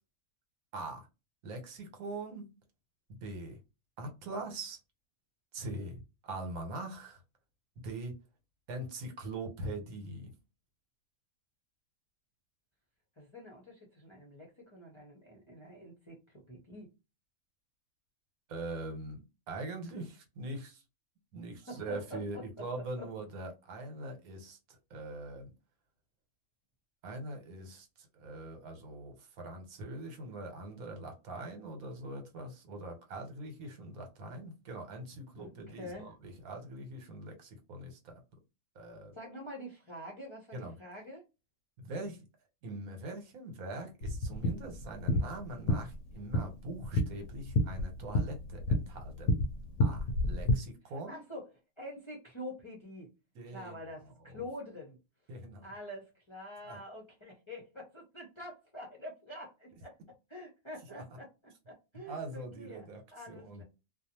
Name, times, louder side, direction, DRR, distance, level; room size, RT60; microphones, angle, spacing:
voice 1, 0.7-1.1 1.4-2.5 3.1-3.6 4.0-4.8 5.5-7.2 7.8-8.2 8.7-10.3 18.5-20.0 20.4-20.8 21.3-24.6 24.9-25.5 27.0-27.9 28.1-38.1 38.7-39.1 40.5-40.8 41.8-42.3 42.6-49.3 49.8-51.2 53.3-53.8 54.3-54.5 55.3-55.7 56.6-56.8 60.9-61.0 62.1-63.0 63.3-63.6, right 2 dB, 75° right, 1.3 m, -42 dB
voice 2, 13.2-16.9 19.9-20.1 21.7-23.1 35.4-36.1 39.1-41.2 51.1-51.5 51.8-53.1 53.5-55.0 55.6-60.0 60.3-61.3 61.7-63.6, left 1 dB, 30° left, 0.6 m, -46 dB
sound 1, 44.0-50.5, left 1 dB, 65° left, 0.8 m, -31 dB
2.5 x 2.3 x 2.8 m
omnidirectional pair, 1.5 m